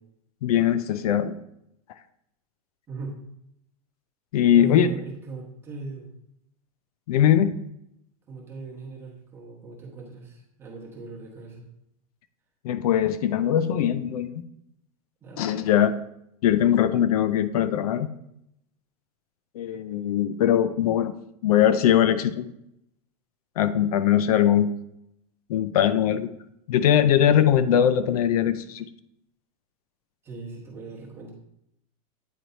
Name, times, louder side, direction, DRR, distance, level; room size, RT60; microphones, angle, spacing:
voice 1, 0.4-1.3 4.3-4.9 7.1-7.5 12.6-14.3 15.4-15.9 16.4-18.1 19.6-21.1 21.4-22.5 23.6-24.7 25.5-26.3 26.7-28.9, left 10 dB, 75° left, 13 dB, 0.5 m, -21 dB
voice 2, 4.5-6.1 8.3-11.6 15.2-15.8 30.2-31.3, right 4 dB, 10° right, -3 dB, 1.2 m, -38 dB
9.1 x 3.1 x 4.0 m, 0.79 s
supercardioid pair, 175°, 19 cm